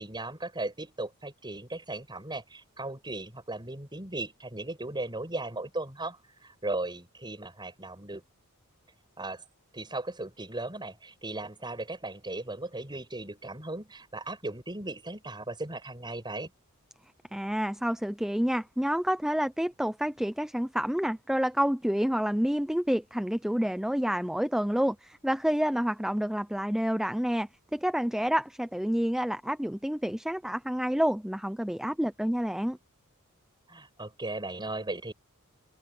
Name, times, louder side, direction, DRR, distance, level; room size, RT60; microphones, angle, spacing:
voice 1, 0.0-8.2 9.2-9.4 9.7-16.5 33.7-35.1, right 2 dB, 20° right, 7.9 m, -37 dB
voice 2, 17.3-32.8, equal, ahead, 0.6 m, -28 dB
head